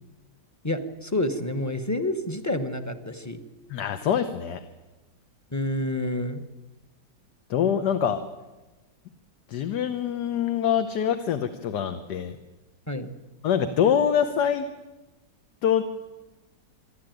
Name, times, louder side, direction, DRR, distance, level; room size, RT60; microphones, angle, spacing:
voice 1, 0.6-3.4 5.5-6.4 12.9-13.1, left 1 dB, 10° left, 8 dB, 0.9 m, -28 dB
voice 2, 3.7-4.6 7.5-8.2 9.5-12.4 13.4-14.7 15.6-15.8, left 8 dB, 70° left, 8 dB, 1.5 m, -24 dB
25.5 x 11.5 x 9.2 m, 1.1 s
omnidirectional pair, 1.9 m